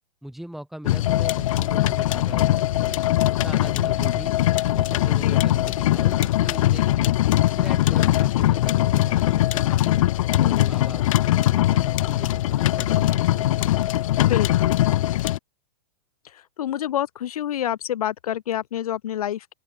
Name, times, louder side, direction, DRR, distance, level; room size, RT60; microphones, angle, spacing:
voice 1, 0.2-3.0 3.4-4.4 4.7-7.1 7.5-10.0 10.3-14.3, right 1 dB, ahead, 4.1 m, -40 dB
sound 1, 0.9-15.4, left 14 dB, 65° left, 1.9 m, -21 dB
voice 2, 10.4-10.8 14.3-14.8 16.2-19.5, left 11 dB, 85° left, 1.2 m, -28 dB
open air
supercardioid pair, 150°, 18 cm